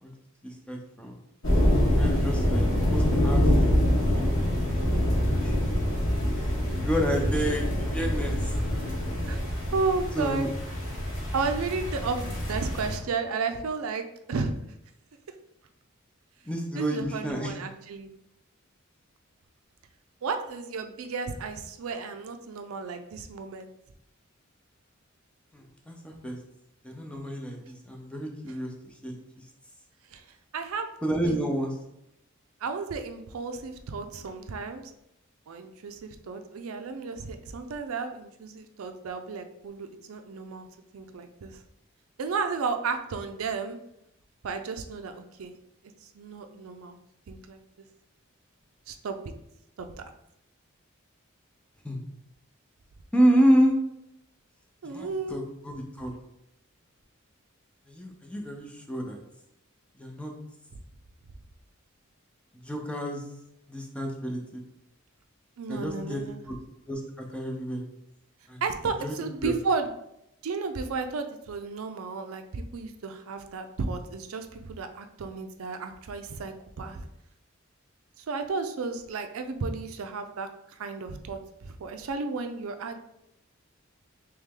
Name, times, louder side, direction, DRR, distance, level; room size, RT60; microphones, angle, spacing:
voice 1, 0.4-1.1 1.8-2.7 2.9-3.5 3.8-4.1 4.4-4.6 5.4-5.6 6.8-8.5 10.2-10.5 16.5-17.5 25.5-26.4 26.8-29.2 31.0-31.7 51.8-52.0 53.1-53.7 54.8-56.1 57.9-59.2 60.0-60.3 62.5-63.2 63.7-64.6 65.7-66.2 66.5-66.6 66.9-67.8 68.5-68.6 69.0-69.1 69.4-69.5, equal, 5° left, 1 dB, 0.5 m, -29 dB
sound 1, 1.4-13.0, equal, 65° left, 1.2 m, -25 dB
voice 2, 2.4-2.8 9.2-9.4 9.7-10.5 11.3-14.5 16.7-18.1 20.2-23.7 30.1-30.2 30.5-30.9 31.3-31.5 32.6-34.9 35.5-40.7 40.9-41.6 42.2-43.8 44.4-45.6 46.1-47.0 47.3-47.6 48.9-49.1 49.8-49.9 54.8-55.4 60.7-60.8 65.6-66.4 68.6-69.9 70.4-77.0 78.2-83.0, right 4 dB, 90° right, 7 dB, 0.4 m, -33 dB
3.3 x 3.0 x 3.6 m, 0.81 s
head